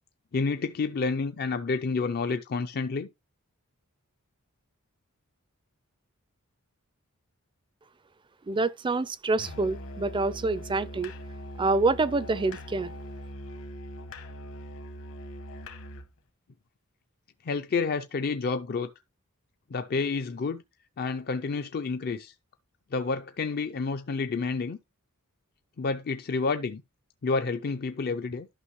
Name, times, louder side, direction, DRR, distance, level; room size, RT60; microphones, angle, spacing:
voice 1, 0.3-3.1 17.4-18.9 19.7-20.6 21.0-22.3 22.9-24.8 25.8-26.8 27.2-28.5, left 4 dB, 45° left, 0.4 m, -29 dB
voice 2, 8.5-11.1 11.6-12.9, right 3 dB, 20° right, 0.4 m, -26 dB
Musical instrument, 9.4-16.1, equal, 60° left, 1.3 m, -41 dB
11.5 x 5.8 x 3.1 m
head